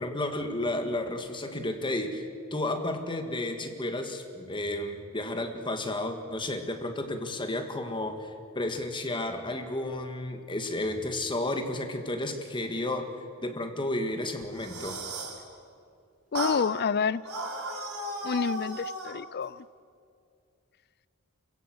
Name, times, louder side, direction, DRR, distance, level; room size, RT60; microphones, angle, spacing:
voice 1, 0.0-13.1 13.4-15.0, left 1 dB, 25° left, 6 dB, 1.8 m, -32 dB
sound 1, 14.4-15.4 16.3-16.6 17.2-19.2, right 1 dB, 90° right, 4.1 m, -35 dB
voice 2, 16.3-17.2 18.2-19.6, left 6 dB, 50° left, 19 dB, 0.5 m, -28 dB
27.0 x 16.5 x 7.9 m, 2.4 s
head